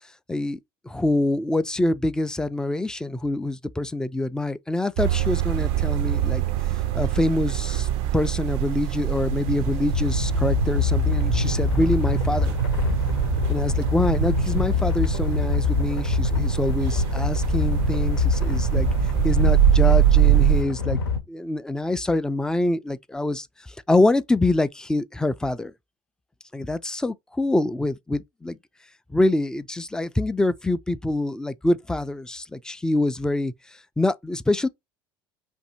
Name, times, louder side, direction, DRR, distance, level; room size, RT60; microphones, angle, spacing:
voice 1, 0.3-0.6 0.9-6.4 6.9-7.9 8.1-12.5 13.5-18.9 19.2-21.0 21.3-23.5 23.9-25.7 26.5-28.6 29.1-33.5 34.0-34.7, left 2 dB, 5° left, 0.3 m, -25 dB
sound 1, 5.0-20.6, right 14 dB, 60° right, 0.4 m, -24 dB
sound 2, 8.9-21.2, left 4 dB, 90° left, 0.8 m, -25 dB
2.6 x 2.6 x 4.2 m
hypercardioid pair, 80°, 12 cm